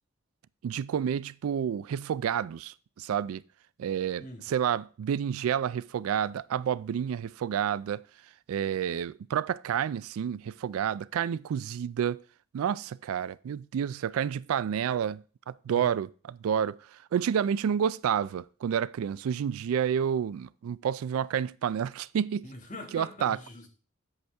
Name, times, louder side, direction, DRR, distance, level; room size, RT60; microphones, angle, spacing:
voice 1, 0.6-3.4 3.8-8.0 8.5-12.2 12.5-15.2 15.5-16.8 17.1-22.4 22.9-23.4, right 8 dB, 85° right, 0.3 m, -29 dB
voice 2, 22.4-23.7, left 1 dB, 35° left, 1.9 m, -43 dB
7.9 x 7.8 x 3.4 m
head